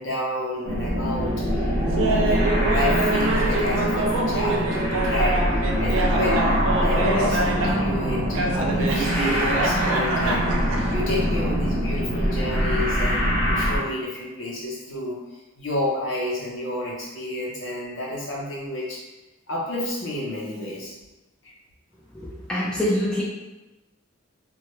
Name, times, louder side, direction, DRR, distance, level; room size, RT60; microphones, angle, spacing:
voice 1, 0.0-15.2 15.6-19.0 19.5-20.9 21.4-21.5, left 1 dB, 70° left, -5 dB, 0.8 m, -30 dB
sound 1, 0.6-13.8, equal, 45° right, 0.8 m, -23 dB
Laughter, 2.0-7.9 8.3-10.9, right 2 dB, 85° right, 0.4 m, -26 dB
voice 2, 22.1-23.2, left 1 dB, 5° left, -8 dB, 0.5 m, -25 dB
2.3 x 2.2 x 3.0 m, 1.1 s
head